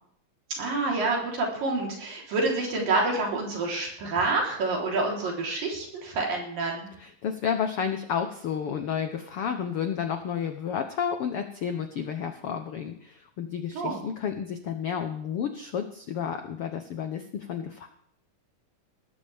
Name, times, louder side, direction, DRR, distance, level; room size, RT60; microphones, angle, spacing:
voice 1, 0.6-6.9 13.8-14.0, right 3 dB, 80° right, -1 dB, 5.5 m, -28 dB
voice 2, 7.0-17.9, left 7 dB, 75° left, 6 dB, 1.3 m, -31 dB
18.5 x 14.0 x 3.5 m, 0.67 s
omnidirectional pair, 3.9 m